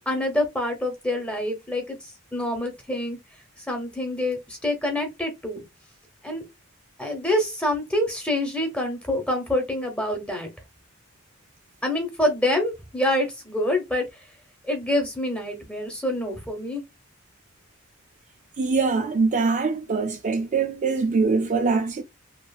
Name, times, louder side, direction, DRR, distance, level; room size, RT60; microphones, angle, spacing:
voice 1, 0.1-2.0 2.3-3.2 3.7-5.6 6.2-6.4 7.0-10.5 11.8-14.0 14.7-16.8, left 1 dB, 5° left, 0.9 m, -26 dB
voice 2, 18.6-22.0, right 4 dB, 35° right, 0.3 m, -23 dB
2.9 x 2.5 x 2.3 m
head